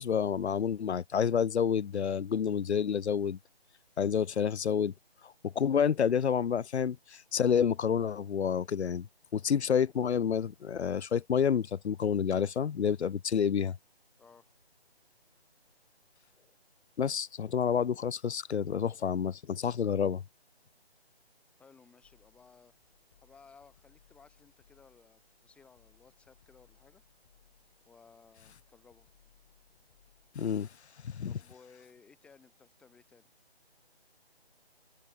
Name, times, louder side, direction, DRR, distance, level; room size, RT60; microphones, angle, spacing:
voice 1, 0.0-3.4 4.0-4.9 5.4-9.1 9.3-13.8 17.0-20.2 30.4-30.7 31.0-31.4, left 7 dB, 90° left, 0.6 m, -29 dB
voice 2, 14.2-14.5 21.6-27.0 27.9-29.1 31.2-33.3, left 5 dB, 5° left, 6.1 m, -59 dB
sound 1, 22.0-30.3, left 10 dB, 25° left, 4.5 m, -67 dB
figure-of-eight pair, 165°, 32 cm